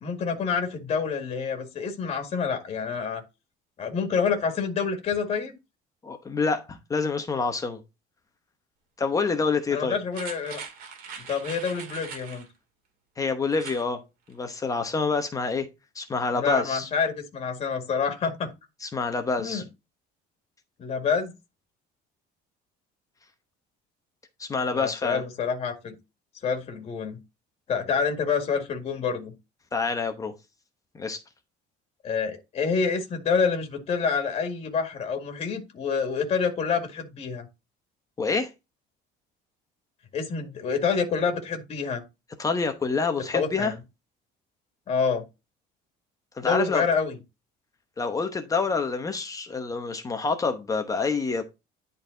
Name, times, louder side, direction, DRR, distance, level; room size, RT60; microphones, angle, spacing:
voice 1, 0.0-3.2 3.8-5.5 9.7-10.6 11.3-12.4 16.3-18.5 19.4-19.6 20.8-21.3 24.7-25.9 26.4-27.2 27.7-29.3 32.0-37.5 40.1-42.0 43.3-43.8 44.9-45.2 46.4-47.2, left 5 dB, 35° left, 1.9 m, -27 dB
voice 2, 6.0-7.8 9.0-10.0 13.2-14.0 14.3-15.7 15.9-16.9 18.8-19.6 24.4-25.2 29.7-30.3 30.9-31.2 38.2-38.5 42.4-43.7 46.4-46.9 48.0-51.4, left 4 dB, 20° left, 0.9 m, -27 dB
sound 1, 10.1-12.5 13.5-13.9 14.3-14.4, right 6 dB, 50° right, 2.2 m, -41 dB
10.5 x 4.1 x 3.8 m
cardioid pair, 175°, 19 cm